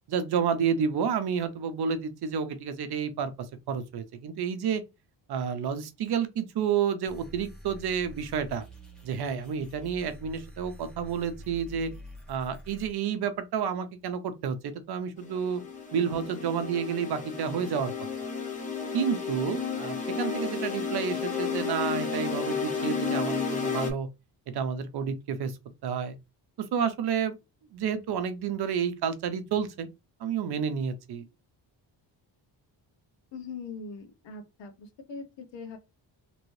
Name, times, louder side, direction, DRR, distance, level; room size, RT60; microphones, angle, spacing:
voice 1, 0.1-4.8 5.3-8.6 9.0-11.9 12.3-15.6 15.9-17.9 18.9-24.1 24.5-25.5 25.8-26.2 26.7-27.3 27.7-29.9 30.2-31.2, right 7 dB, 60° right, 0.6 m, -30 dB
sound 1, 7.1-12.9, left 1 dB, ahead, 1.1 m, -46 dB
sound 2, 15.2-23.9, left 5 dB, 20° left, 0.7 m, -32 dB
voice 2, 33.3-35.8, left 4 dB, 75° left, 1.0 m, -41 dB
3.0 x 2.7 x 3.1 m
cardioid pair, 165°, 45 cm